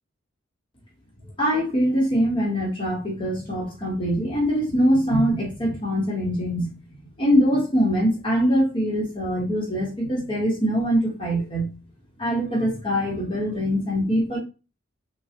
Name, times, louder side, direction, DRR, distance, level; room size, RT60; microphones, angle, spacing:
voice 1, 1.4-6.7 7.2-11.7 12.2-14.4, equal, 25° left, -3 dB, 0.9 m, -23 dB
3.2 x 2.2 x 2.8 m, 0.31 s
head